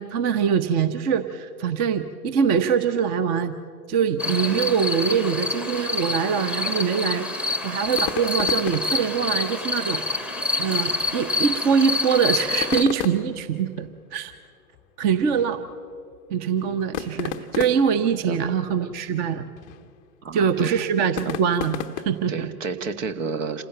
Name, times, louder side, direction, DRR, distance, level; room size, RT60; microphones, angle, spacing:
voice 1, 0.0-3.5 3.9-7.3 7.6-10.0 10.6-14.3 15.0-15.6 16.3-19.5 20.3-21.8 22.0-22.5, right 7 dB, 20° right, 11 dB, 0.8 m, -23 dB
sound 1, 4.2-12.8, left 3 dB, 5° right, 1.1 m, -27 dB
sound 2, 7.8-22.4, left 9 dB, 20° left, 0.6 m, -37 dB
voice 2, 20.2-20.8 21.2-21.4 22.3-23.6, right 5 dB, 60° right, 11 dB, 1.7 m, -31 dB
27.0 x 15.5 x 7.8 m, 2.1 s
figure-of-eight pair, 110°, 44 cm